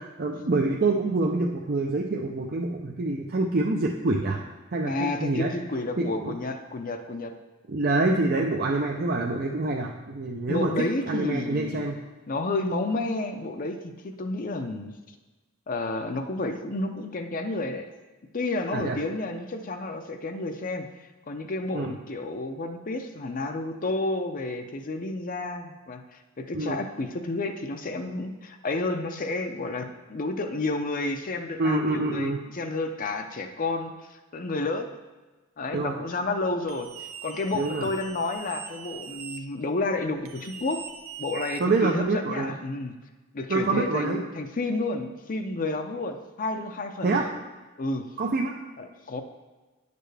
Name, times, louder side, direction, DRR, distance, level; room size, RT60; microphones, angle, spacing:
voice 1, 0.0-4.4 4.7-5.5 6.0-6.3 7.7-10.7 11.1-12.0 18.7-19.0 21.7-21.9 26.5-26.8 31.6-32.4 35.7-36.0 37.5-37.9 41.6-42.5 43.5-44.2 47.0-47.2 48.2-48.5, right 2 dB, 45° right, 0 dB, 0.6 m, -26 dB
voice 2, 4.8-7.3 8.1-8.2 10.5-11.8 12.3-14.9 15.7-17.9 18.3-20.9 21.3-34.9 35.6-40.8 41.2-43.0 43.3-47.4 47.8-48.1 48.8-49.2, left 2 dB, 40° left, 6 dB, 0.6 m, -31 dB
sound 1, 36.7-39.4 40.2-42.0, right 7 dB, 85° right, 0.7 m, -41 dB
9.9 x 6.8 x 3.4 m, 1.2 s
head